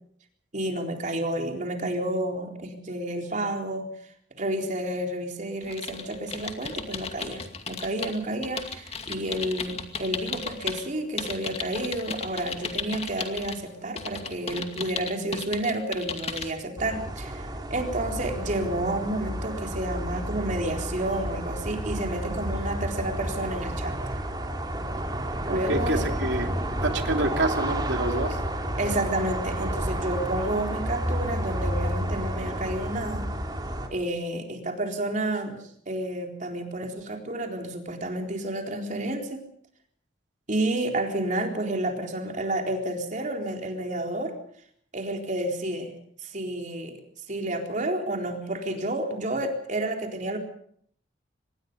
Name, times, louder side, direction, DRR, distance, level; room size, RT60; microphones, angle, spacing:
voice 1, 0.5-3.9 4.4-24.2 25.4-26.1 28.8-33.3 33.9-39.4 40.5-44.3 44.9-45.9 46.2-47.0 47.3-50.4, right 1 dB, 45° right, 3 dB, 4.0 m, -30 dB
sound 1, 5.6-10.8 11.2-13.6 14.0-16.5, left 5 dB, 35° left, 2.4 m, -35 dB
sound 2, 16.8-33.9, right 1 dB, 25° right, 3.4 m, -31 dB
voice 2, 25.5-26.6 26.8-28.4, right 2 dB, 75° right, 4 dB, 3.1 m, -27 dB
25.5 x 20.5 x 5.3 m, 0.62 s
head